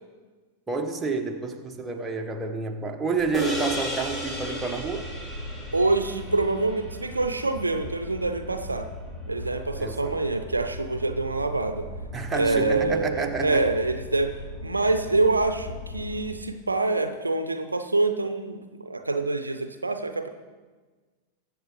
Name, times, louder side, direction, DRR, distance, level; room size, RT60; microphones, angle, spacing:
voice 1, 0.7-5.1 9.7-10.2 12.1-13.7, right 4 dB, 15° right, 3 dB, 1.0 m, -29 dB
sound 1, 3.2-16.3, left 1 dB, 40° left, 1.6 m, -39 dB
sound 2, 3.3-7.9, left 1 dB, 20° left, 2.4 m, -35 dB
voice 2, 5.7-8.9 9.3-11.8 12.3-14.3 14.6-20.3, right 2 dB, 80° right, 8 dB, 0.6 m, -26 dB
20.5 x 7.5 x 3.1 m, 1.4 s
figure-of-eight pair, 90°, 0 cm